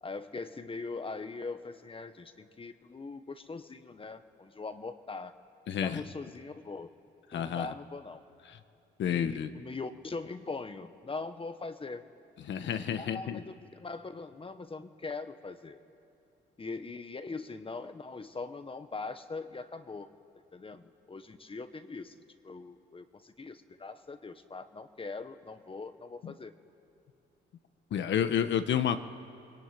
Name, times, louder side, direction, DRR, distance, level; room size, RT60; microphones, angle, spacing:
voice 1, 0.0-5.3 5.8-6.9 7.3-8.2 9.1-12.0 13.0-15.8 16.6-20.1 20.5-22.1 22.4-26.5, left 3 dB, 25° left, 9 dB, 1.3 m, -41 dB
voice 2, 5.7-6.0 7.3-7.7 9.0-9.5 12.5-13.4 26.2-26.3 27.9-29.0, left 9 dB, 65° left, 9 dB, 1.3 m, -30 dB
28.5 x 21.5 x 9.2 m, 2.6 s
cardioid pair, 90°, 20 cm